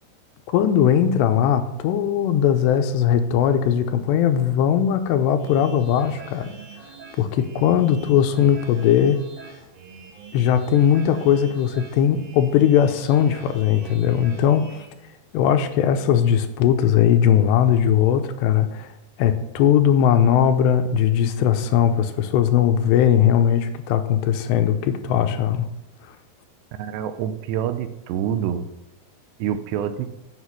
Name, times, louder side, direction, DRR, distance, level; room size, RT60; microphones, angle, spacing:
voice 1, 0.5-6.5 7.2-9.2 10.3-14.8 15.3-18.9 19.2-25.7, left 9 dB, 80° left, 8 dB, 2.8 m, -19 dB
sound 1, 5.4-14.8, right 6 dB, 65° right, 3.8 m, -44 dB
voice 2, 26.8-28.6 29.4-30.1, right 9 dB, 85° right, 10 dB, 2.9 m, -26 dB
8.3 x 7.8 x 6.1 m, 0.91 s
omnidirectional pair, 5.0 m